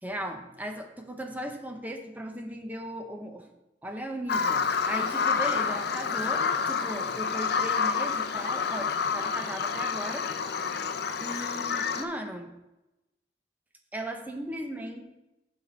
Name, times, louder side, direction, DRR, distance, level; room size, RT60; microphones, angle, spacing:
voice 1, 0.0-3.5 3.8-10.3 11.2-12.5 13.9-15.0, right 1 dB, 10° right, 4 dB, 0.8 m, -37 dB
Bird vocalization bird call bird song, 4.3-12.0, left 5 dB, 60° left, 0.5 m, -28 dB
7.1 x 6.2 x 4.5 m, 0.95 s
head